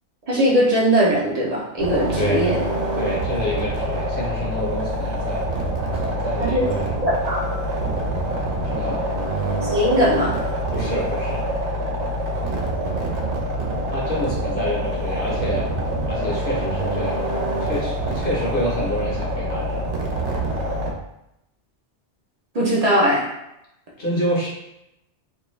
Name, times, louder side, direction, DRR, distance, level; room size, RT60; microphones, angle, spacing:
voice 1, 0.3-2.6 6.4-6.6 7.0-7.4 9.7-10.4 22.5-23.3, equal, 45° right, -5 dB, 0.5 m, -19 dB
sound 1, 1.8-20.9, right 1 dB, 75° right, 0.9 m, -25 dB
voice 2, 2.2-2.5 3.0-5.4 6.0-6.6 8.6-9.0 10.7-11.4 13.9-15.7 16.1-19.9 24.0-24.5, equal, 55° left, -5 dB, 0.9 m, -27 dB
2.6 x 2.3 x 3.0 m, 0.85 s
omnidirectional pair, 1.2 m